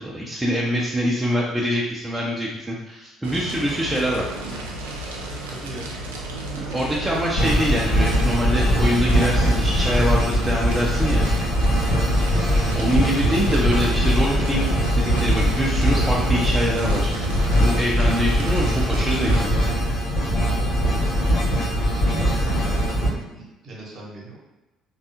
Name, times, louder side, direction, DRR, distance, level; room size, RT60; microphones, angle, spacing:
voice 1, 0.0-4.2 6.5-11.2 12.7-17.2 17.6-19.3, equal, 15° right, -4 dB, 0.5 m, -24 dB
Fire, 3.2-19.4, right 1 dB, 75° right, 0.4 m, -33 dB
voice 2, 5.5-6.0 12.7-13.0 20.5-21.2 21.8-24.4, right 2 dB, 50° right, -3 dB, 0.9 m, -38 dB
sound 1, 7.4-23.1, equal, 45° left, 1.1 m, -21 dB
sound 2, 11.8-18.2, equal, 90° left, 0.5 m, -39 dB
3.3 x 2.3 x 2.7 m, 1.0 s
figure-of-eight pair, 50°, 0 cm